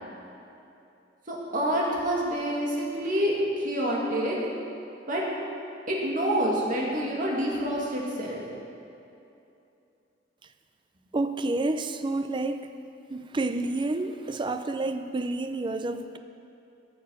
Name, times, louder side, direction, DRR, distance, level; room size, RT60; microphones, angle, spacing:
voice 1, 1.3-4.4 5.1-5.2 5.9-8.4, equal, 45° right, -4 dB, 2.2 m, -27 dB
voice 2, 11.1-12.7 13.1-16.2, right 2 dB, 25° right, 8 dB, 0.4 m, -29 dB
13.5 x 6.6 x 6.4 m, 2.8 s
head